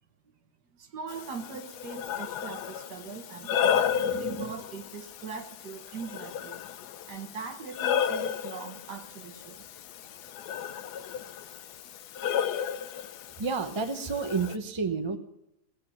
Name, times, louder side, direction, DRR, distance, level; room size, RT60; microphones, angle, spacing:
voice 1, 0.8-6.6 7.1-9.6, right 6 dB, 80° right, 6 dB, 2.0 m, -41 dB
Breathing, 1.1-14.6, left 8 dB, 75° left, 1.2 m, -33 dB
voice 2, 13.4-15.2, right 4 dB, 20° right, 7 dB, 0.8 m, -30 dB
18.0 x 7.9 x 7.1 m, 0.88 s
omnidirectional pair, 1.8 m